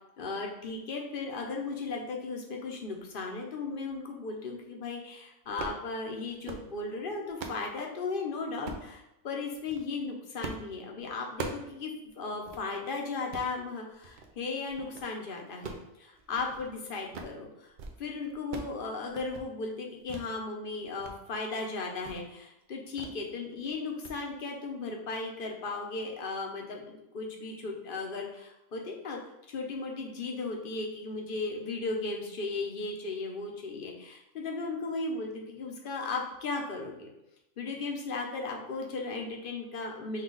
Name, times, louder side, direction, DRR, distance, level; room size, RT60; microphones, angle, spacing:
voice 1, 0.2-17.7 18.0-29.2 29.5-37.1 37.6-40.2, left 3 dB, 50° left, 1 dB, 0.8 m, -36 dB
sound 1, 5.4-5.8 6.3-6.7 7.1-7.7 8.6-8.9 9.5-9.8 10.4-10.7 11.0-11.7 12.1-12.2 12.5-12.6 13.1-13.5 14.0-14.3 14.7-15.1 15.5-16.7 17.0-17.4 17.7-18.0 18.2-18.8 19.0-19.5 20.1-20.3 20.7-21.1 21.5-21.6 22.0-22.2 23.0-23.2 23.5-23.7 24.0-24.2, right 4 dB, 60° right, 0.5 m, -41 dB
5.5 x 2.4 x 3.8 m, 0.85 s
omnidirectional pair, 1.4 m